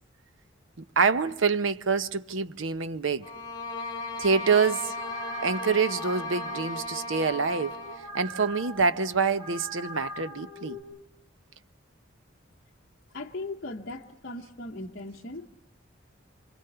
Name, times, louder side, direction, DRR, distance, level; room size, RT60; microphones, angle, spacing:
voice 1, 0.8-3.3 4.2-4.9 5.4-7.8 8.1-10.8, right 5 dB, 80° right, 0.8 m, -26 dB
sound 1, 3.2-8.1, left 2 dB, 20° left, 2.7 m, -36 dB
sound 2, 4.9-10.8, right 1 dB, 35° right, 6.0 m, -43 dB
voice 2, 13.1-15.5, left 2 dB, 50° left, 1.0 m, -38 dB
26.5 x 24.5 x 6.8 m
head